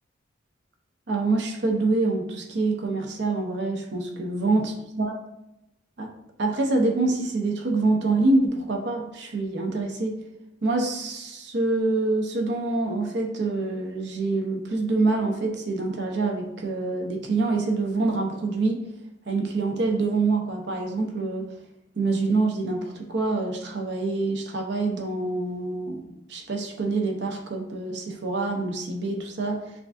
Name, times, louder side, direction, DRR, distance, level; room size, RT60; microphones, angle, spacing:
voice 1, 1.1-5.1 6.0-6.1 6.4-10.2 10.6-18.8 19.3-21.5 22.0-29.7, right 3 dB, 60° right, 2 dB, 0.6 m, -26 dB
5.8 x 2.5 x 2.4 m, 0.88 s
head